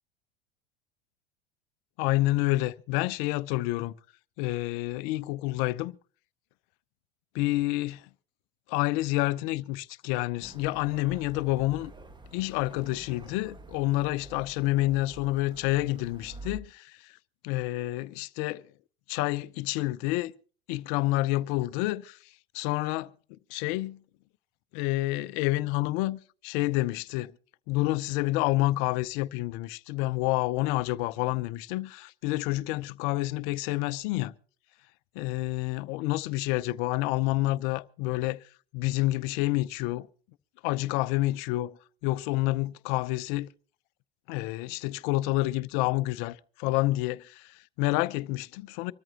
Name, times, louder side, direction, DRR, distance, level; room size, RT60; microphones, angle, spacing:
voice 1, 2.0-3.9 4.4-5.9 7.3-8.1 8.7-11.9 12.3-17.1 17.4-18.7 19.1-20.3 20.7-22.2 22.5-23.1 23.5-24.0 24.7-27.3 27.7-34.3 35.1-38.4 38.7-40.1 40.6-41.8 42.0-43.5 44.3-48.9, left 18 dB, 55° left, 0.7 m, -28 dB
sound 1, 10.4-16.6, right 1 dB, 15° right, 1.4 m, -47 dB
25.0 x 13.5 x 2.8 m
hypercardioid pair, 80°, 30 cm